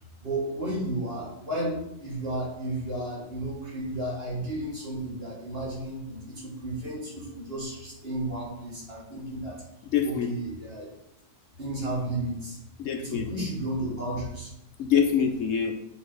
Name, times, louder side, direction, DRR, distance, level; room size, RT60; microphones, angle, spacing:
voice 1, 0.2-9.6 10.0-10.9 11.6-12.6 13.0-14.5, right 1 dB, 40° right, -4 dB, 2.5 m, -33 dB
voice 2, 9.9-10.3 12.8-13.5 14.8-15.7, left 7 dB, 65° left, 5 dB, 0.9 m, -25 dB
7.8 x 4.1 x 4.8 m, 0.88 s
omnidirectional pair, 1.7 m